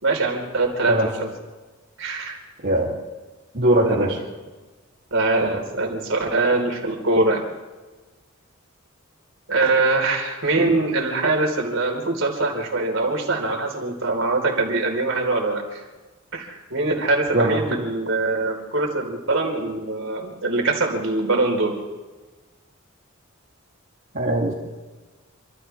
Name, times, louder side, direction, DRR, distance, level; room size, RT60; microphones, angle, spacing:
voice 1, 0.0-1.3 2.0-2.4 3.8-4.1 5.1-7.4 9.5-15.8 16.3-21.8, right 2 dB, 70° right, 2 dB, 4.8 m, -23 dB
voice 2, 3.5-4.2 17.3-17.6 24.1-24.5, right 1 dB, 50° right, -5 dB, 3.2 m, -20 dB
28.0 x 26.5 x 3.6 m, 1.3 s
head